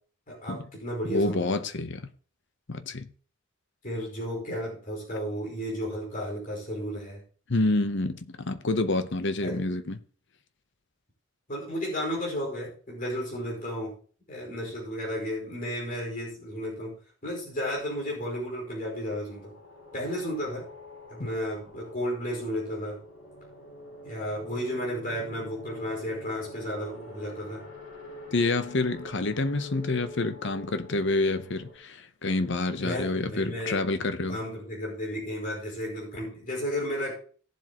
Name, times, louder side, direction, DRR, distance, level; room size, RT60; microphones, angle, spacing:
voice 1, 0.3-1.6 3.8-7.2 9.4-9.6 11.5-13.9 14.3-17.0 17.2-19.5 19.9-20.7 21.1-23.0 24.0-27.6 32.8-37.2, equal, 40° left, 5.1 m, -33 dB
voice 2, 1.1-2.1 2.7-3.1 7.5-10.0 28.3-34.4, left 2 dB, 60° left, 0.9 m, -28 dB
sound 1, 17.6-31.7, left 2 dB, 75° left, 4.7 m, -47 dB
18.5 x 7.6 x 3.0 m
head